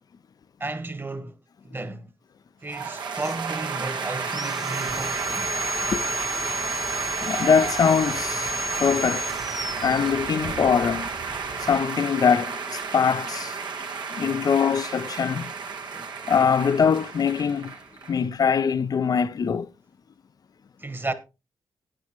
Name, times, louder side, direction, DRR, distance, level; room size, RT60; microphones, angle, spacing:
voice 1, 0.6-1.4 1.6-2.1 2.6-5.5 15.9-16.1 20.8-21.1, right 2 dB, 30° right, 1.4 m, -33 dB
sound 1, 2.7-18.2, right 5 dB, 80° right, 1.4 m, -32 dB
Sawing, 4.2-10.7, left 1 dB, ahead, 0.8 m, -33 dB
sound 2, 4.9-11.8, right 4 dB, 65° right, 2.7 m, -41 dB
voice 2, 7.2-8.5 8.8-9.3 9.8-11.1 11.6-13.6 14.1-15.5 16.3-17.7 18.1-19.7, left 6 dB, 55° left, 0.6 m, -22 dB
13.0 x 9.4 x 3.1 m
cardioid pair, 60°, 8 cm